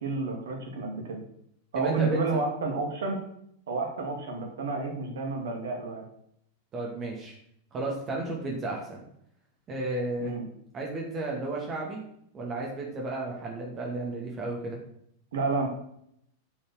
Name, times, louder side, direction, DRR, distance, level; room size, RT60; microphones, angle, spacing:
voice 1, 0.0-1.2 1.7-3.2 3.7-6.0 10.2-10.4 15.3-15.7, right 3 dB, 60° right, 2 dB, 2.5 m, -30 dB
voice 2, 1.7-2.4 6.7-7.3 7.7-9.0 9.7-10.4 10.7-12.0 12.3-14.8, right 2 dB, 30° right, -2 dB, 2.3 m, -33 dB
8.6 x 5.6 x 6.5 m, 0.72 s
figure-of-eight pair, 90°, 0 cm